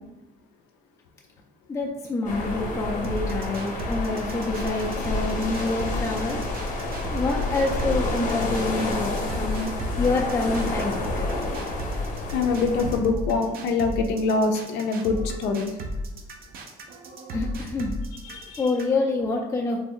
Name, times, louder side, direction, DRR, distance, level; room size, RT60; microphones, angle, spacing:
voice 1, 1.7-6.4 7.0-9.7 10.0-11.0 17.3-17.9 18.6-19.8, left 3 dB, 20° left, -2 dB, 0.4 m, -27 dB
sound 1, 2.2-13.0, left 2 dB, 50° left, 0.7 m, -29 dB
sound 2, 3.0-19.0, equal, 60° right, 0.6 m, -35 dB
voice 2, 12.3-15.7 18.2-18.7, left 4 dB, 90° left, 5 dB, 0.4 m, -24 dB
3.3 x 2.0 x 3.7 m, 1.0 s
cardioid pair, 110°, 17 cm